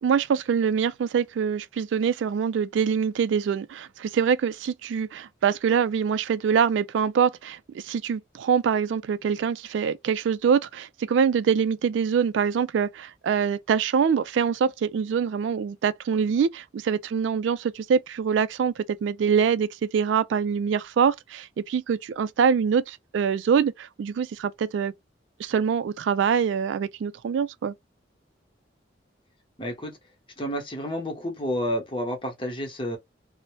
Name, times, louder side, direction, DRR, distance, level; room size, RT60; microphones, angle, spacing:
voice 1, 0.0-24.9 25.4-27.7, right 7 dB, 80° right, 0.3 m, -24 dB
voice 2, 29.6-29.9 30.4-33.0, equal, 25° left, 0.9 m, -30 dB
2.7 x 2.0 x 3.0 m
head